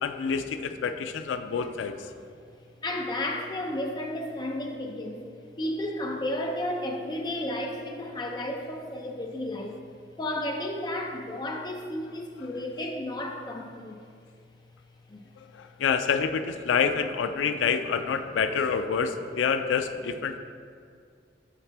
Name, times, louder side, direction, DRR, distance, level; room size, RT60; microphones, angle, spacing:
voice 1, 0.0-2.0 15.6-20.4, left 6 dB, 85° left, 9 dB, 0.4 m, -27 dB
voice 2, 2.8-5.2 5.6-9.8 10.2-14.0 15.1-15.2, left 1 dB, 25° left, 2 dB, 0.5 m, -32 dB
7.3 x 4.9 x 3.4 m, 2.2 s
head